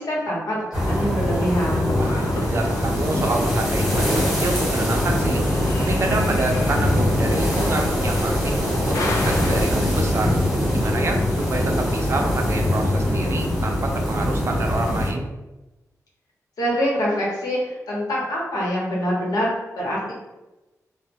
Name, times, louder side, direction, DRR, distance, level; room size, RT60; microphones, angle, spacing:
voice 1, 0.0-1.9 16.6-20.1, equal, 90° left, -5 dB, 1.0 m, -25 dB
sound 1, 0.7-15.1, left 1 dB, ahead, 1.2 m, -22 dB
sound 2, 1.3-9.6, left 2 dB, 55° left, 0.4 m, -32 dB
voice 2, 2.0-5.4 5.8-10.3 10.7-15.2, right 2 dB, 45° right, 2 dB, 0.4 m, -27 dB
2.2 x 2.1 x 3.4 m, 1.0 s
wide cardioid pair, 110°, 6 cm